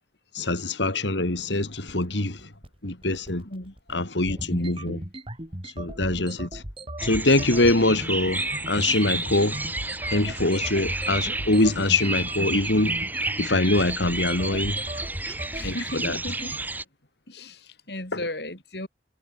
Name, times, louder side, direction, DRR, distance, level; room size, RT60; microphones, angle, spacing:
voice 1, 0.3-2.5 2.8-3.4 3.9-5.0 5.6-6.6 7.0-13.0 13.4-14.8 15.6-16.2 18.1-18.2, left 2 dB, 90° left, 3.4 m, -24 dB
sound 1, 1.4-16.6, right 1 dB, 30° right, 4.8 m, -37 dB
sound 2, 7.0-16.8, right 2 dB, 10° right, 3.7 m, -31 dB
voice 2, 15.5-16.6 17.3-18.9, left 1 dB, 65° left, 5.8 m, -36 dB
head